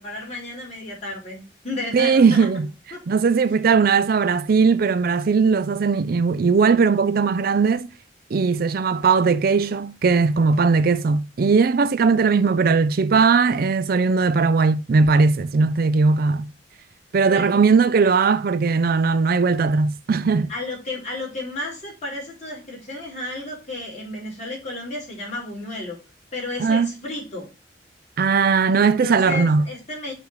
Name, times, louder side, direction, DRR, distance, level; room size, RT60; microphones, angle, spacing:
voice 1, 0.0-2.5 2.9-3.0 17.3-17.6 20.5-26.0 26.3-27.5 28.8-30.1, left 2 dB, 40° left, 4.0 m, -32 dB
voice 2, 1.9-2.7 3.1-7.9 8.3-16.5 17.1-20.5 26.6-26.9 28.2-29.7, right 5 dB, 55° right, 0.4 m, -19 dB
6.8 x 4.1 x 4.7 m
head